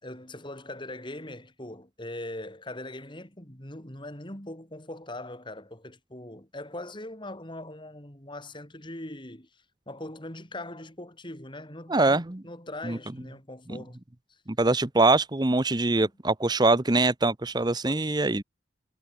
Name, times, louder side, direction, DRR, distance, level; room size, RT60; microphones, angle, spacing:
voice 1, 0.0-14.0 14.3-14.4 16.0-16.1 17.8-18.3, left 1 dB, 25° left, 4.7 m, -41 dB
voice 2, 11.9-12.4 12.8-13.0 14.6-18.4, right 2 dB, 20° right, 0.9 m, -23 dB
head